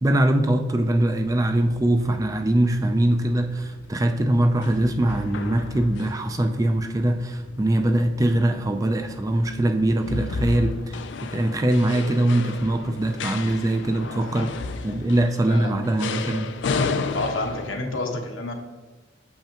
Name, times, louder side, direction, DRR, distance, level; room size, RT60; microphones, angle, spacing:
voice 1, 0.0-14.5 14.8-16.5, right 1 dB, 15° right, 6 dB, 0.4 m, -22 dB
sound 1, 1.2-17.8, left 4 dB, 65° left, 0.4 m, -34 dB
voice 2, 14.0-14.6 15.5-15.7 17.1-18.5, left 2 dB, 85° left, 2 dB, 1.1 m, -30 dB
7.7 x 5.6 x 2.9 m, 1.3 s
head